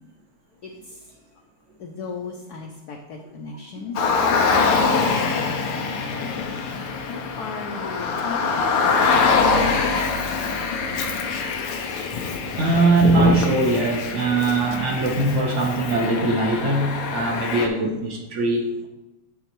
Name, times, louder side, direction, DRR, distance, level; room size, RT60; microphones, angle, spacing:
voice 1, 0.6-1.4 1.8-4.1 4.6-6.5 7.1-8.7 9.9-10.4, left 4 dB, 65° left, 0 dB, 1.0 m, -38 dB
Car, 4.0-17.7, left 4 dB, 90° left, 1.7 m, -24 dB
voice 2, 12.6-18.9, right 2 dB, 50° right, 3 dB, 0.9 m, -21 dB
10.0 x 4.0 x 4.5 m, 1.0 s
omnidirectional pair, 2.4 m